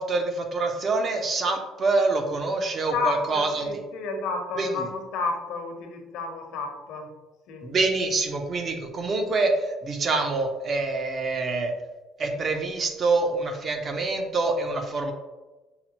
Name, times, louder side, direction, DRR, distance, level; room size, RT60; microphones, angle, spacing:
voice 1, 0.0-3.8 4.6-4.7 7.6-11.7 12.2-15.1, right 3 dB, 35° right, 4 dB, 0.6 m, -26 dB
voice 2, 2.9-7.1 7.5-7.7, left 4 dB, 75° left, 3 dB, 0.8 m, -31 dB
5.7 x 2.1 x 2.9 m, 1.1 s
cardioid pair, 120°, 0 cm